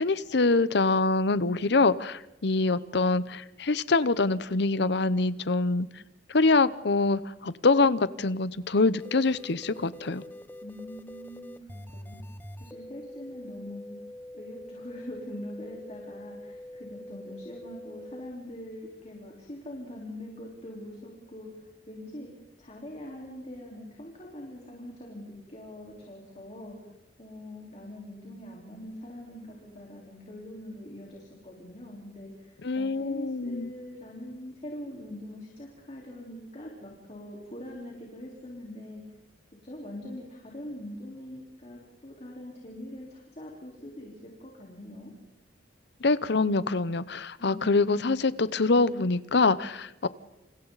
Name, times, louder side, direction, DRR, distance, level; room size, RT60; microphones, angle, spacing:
voice 1, 0.0-5.9 6.3-10.2 32.6-33.7 46.0-50.1, left 3 dB, 65° left, 16 dB, 0.8 m, -25 dB
sound 1, 9.0-18.3, left 1 dB, 10° left, 0.8 m, -44 dB
voice 2, 10.6-12.2 12.6-14.0 14.3-22.3 22.6-26.8 27.2-39.0 39.6-45.1 47.4-48.2, left 1 dB, 35° left, -2 dB, 4.2 m, -43 dB
29.0 x 28.5 x 4.1 m, 0.91 s
head